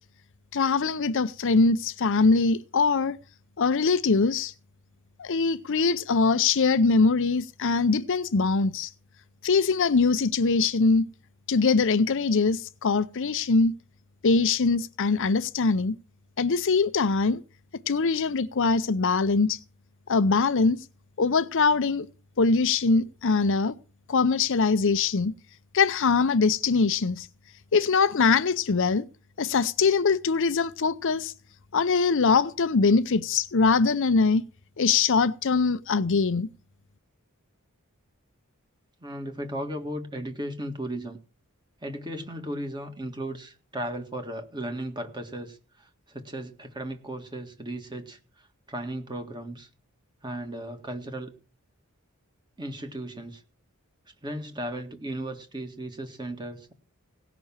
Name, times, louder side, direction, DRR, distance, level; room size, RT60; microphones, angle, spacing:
voice 1, 0.5-3.2 3.6-4.5 5.2-8.9 9.4-11.1 11.5-13.7 14.2-15.9 16.4-17.4 17.9-19.6 20.1-20.8 21.2-22.1 22.4-23.7 24.1-25.3 25.7-27.3 27.7-29.1 29.4-31.3 31.7-34.4 34.8-36.5, left 4 dB, 60° left, 0.7 m, -22 dB
voice 2, 39.0-41.2 41.8-49.7 50.2-51.3 52.6-53.4 54.2-56.7, right 1 dB, 20° right, 1.8 m, -36 dB
17.5 x 6.0 x 7.2 m
head